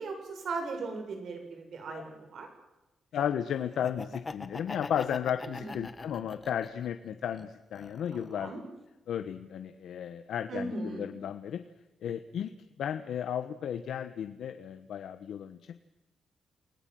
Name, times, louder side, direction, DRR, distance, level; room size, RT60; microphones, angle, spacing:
voice 1, 0.0-2.5 5.5-5.7 8.1-8.6 10.5-11.0, right 3 dB, 60° right, 5 dB, 7.1 m, -38 dB
voice 2, 3.1-8.5 9.1-11.6 12.0-12.5 12.8-15.6, left 9 dB, 85° left, 9 dB, 1.2 m, -34 dB
Laughter, 3.7-6.9 7.3-8.4, left 3 dB, 25° left, 1.5 m, -42 dB
29.0 x 19.0 x 7.7 m, 1.0 s
wide cardioid pair, 150°, 0 cm